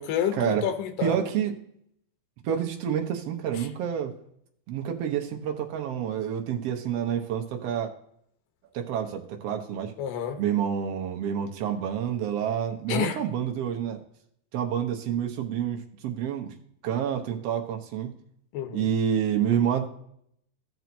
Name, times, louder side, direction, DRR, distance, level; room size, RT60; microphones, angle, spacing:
voice 1, 0.0-1.2 3.6-3.7 10.0-10.4 12.9-13.2 18.5-18.8, left 9 dB, 80° left, 6 dB, 2.6 m, -29 dB
voice 2, 1.0-1.5 2.4-4.1 4.7-7.9 8.7-9.9 10.4-14.0 14.5-16.5 16.8-18.1 18.7-19.9, right 9 dB, 65° right, 3 dB, 1.8 m, -28 dB
14.5 x 6.1 x 2.8 m, 0.71 s
omnidirectional pair, 3.8 m